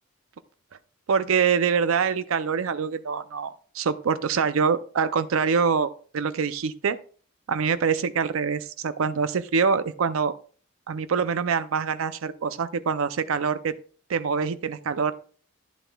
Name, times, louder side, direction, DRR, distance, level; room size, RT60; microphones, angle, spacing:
voice 1, 1.1-7.0 7.5-10.3 10.9-13.8 14.1-15.1, right 6 dB, 85° right, 13 dB, 0.5 m, -25 dB
11.0 x 10.0 x 2.3 m, 0.42 s
head